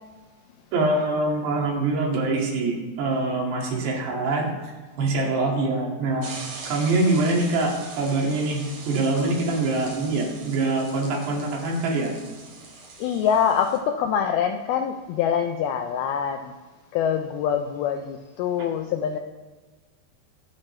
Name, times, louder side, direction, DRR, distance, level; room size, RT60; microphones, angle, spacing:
voice 1, 0.7-4.5 5.0-6.3 6.7-12.1 18.6-18.7, right 2 dB, 70° right, -2 dB, 4.1 m, -24 dB
sound 1, 6.2-13.8, right 4 dB, 50° right, 3.4 m, -42 dB
voice 2, 13.0-16.5 16.9-19.2, left 8 dB, 85° left, 5 dB, 2.2 m, -24 dB
23.0 x 8.8 x 3.2 m, 1.3 s
omnidirectional pair, 5.0 m